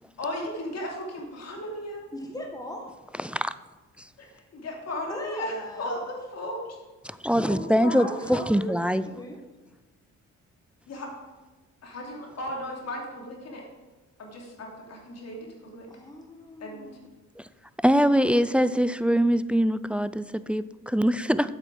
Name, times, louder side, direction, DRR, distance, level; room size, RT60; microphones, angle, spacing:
voice 1, 0.2-2.1 4.2-6.7 7.4-8.2 10.9-11.1 11.8-13.6 14.2-15.9 16.6-16.9, left 1 dB, 60° left, -1 dB, 3.0 m, -36 dB
voice 2, 2.1-2.9 5.1-5.9 8.0-9.4 15.9-17.0, left 1 dB, 10° left, 1 dB, 1.5 m, -39 dB
voice 3, 7.1-9.0 17.8-21.5, equal, 5° right, 14 dB, 0.4 m, -23 dB
8.3 x 7.9 x 6.2 m, 1.2 s
cardioid pair, 90°, 30 cm